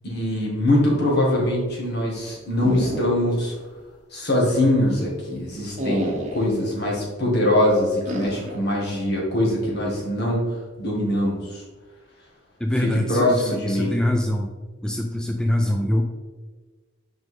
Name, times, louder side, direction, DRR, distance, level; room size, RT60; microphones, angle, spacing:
voice 1, 0.0-3.5 4.1-10.4 10.8-11.6 12.8-14.0, left 1 dB, 55° left, -3 dB, 2.0 m, -22 dB
sound 1, 2.6-3.4 3.8-3.9 5.8-6.6 8.1-8.6, right 1 dB, 40° right, 1.1 m, -29 dB
voice 2, 12.6-14.5 14.8-16.0, left 1 dB, 5° left, 2 dB, 0.4 m, -24 dB
6.2 x 5.2 x 3.7 m, 1.3 s
head